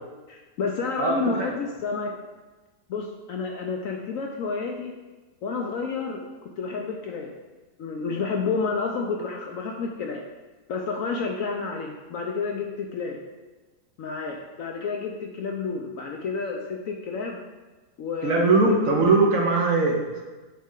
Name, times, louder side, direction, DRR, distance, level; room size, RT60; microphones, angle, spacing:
voice 1, 0.3-2.1 2.9-4.9 5.4-6.2 6.6-7.3 7.8-10.2 10.7-13.2 14.0-17.4 18.0-18.8, left 4 dB, 65° left, 1 dB, 0.9 m, -30 dB
voice 2, 1.0-1.5 18.2-20.2, right 3 dB, 60° right, 0 dB, 1.1 m, -21 dB
7.3 x 4.2 x 3.7 m, 1.2 s
omnidirectional pair, 1.8 m